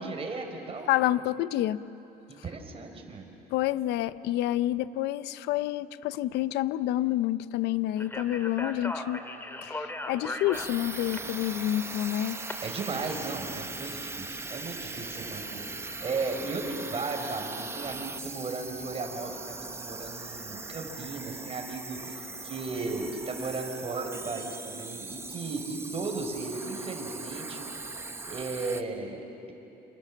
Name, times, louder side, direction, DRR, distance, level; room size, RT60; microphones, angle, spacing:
voice 1, 0.0-0.9 2.3-3.3 12.6-29.5, right 3 dB, 35° right, 3 dB, 4.7 m, -36 dB
voice 2, 0.9-1.9 3.5-9.2 9.6-12.4, left 14 dB, 85° left, 15 dB, 0.7 m, -28 dB
Speech, 8.0-12.5, left 1 dB, 15° left, 2.3 m, -38 dB
sound 1, 10.5-28.8, right 3 dB, 15° right, 1.0 m, -40 dB
28.0 x 27.5 x 7.5 m, 2.9 s
cardioid pair, 110°, 17 cm